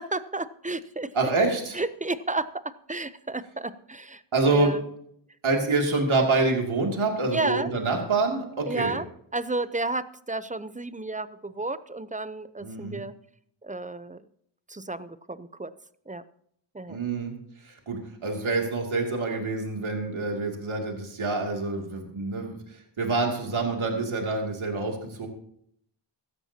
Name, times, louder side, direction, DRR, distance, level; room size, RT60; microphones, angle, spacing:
voice 1, 0.0-1.1 1.7-2.6 2.9-4.2 4.5-4.8 7.3-7.7 8.7-9.1 9.3-13.1 13.6-14.2 14.7-15.7 16.1-16.2 16.7-17.0, right 2 dB, 15° right, 14 dB, 0.7 m, -32 dB
voice 2, 1.1-1.8 4.3-4.7 5.4-9.0 12.6-13.0 16.9-17.3 17.6-25.3, right 3 dB, 80° right, 1 dB, 2.8 m, -26 dB
16.0 x 13.0 x 2.9 m, 0.68 s
cardioid pair, 60°, 48 cm